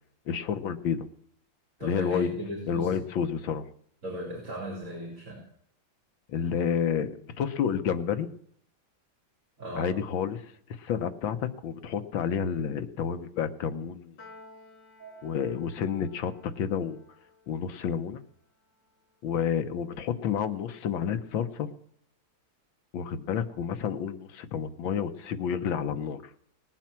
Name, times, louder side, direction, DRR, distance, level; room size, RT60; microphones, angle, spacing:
voice 1, 0.3-1.1 1.8-2.3 2.7-3.6 6.3-8.3 9.8-10.4 10.7-14.1 15.2-17.0 17.5-18.2 19.2-21.7 22.9-26.2, left 7 dB, 90° left, 10 dB, 1.8 m, -30 dB
voice 2, 1.8-3.0 4.0-5.4 9.6-9.9 15.0-15.2, right 1 dB, 40° right, -1 dB, 4.7 m, -37 dB
Piano, 14.2-20.7, left 2 dB, 55° left, 5.6 m, -56 dB
19.0 x 9.0 x 7.5 m, 0.68 s
omnidirectional pair, 2.1 m